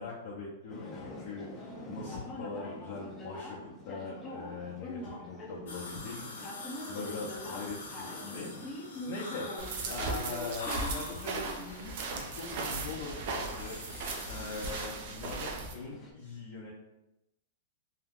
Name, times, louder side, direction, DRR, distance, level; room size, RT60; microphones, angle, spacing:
voice 1, 0.0-6.2 6.9-13.8 14.3-16.7, left 4 dB, 60° left, -4 dB, 0.7 m, -42 dB
sound 1, 0.7-16.1, left 1 dB, 20° left, 0.5 m, -45 dB
sound 2, 5.7-14.9, left 2 dB, 85° left, 0.9 m, -45 dB
sound 3, 9.6-15.7, right 3 dB, 50° right, 0.5 m, -37 dB
2.8 x 2.2 x 3.5 m, 0.90 s
hypercardioid pair, 150°, 0 cm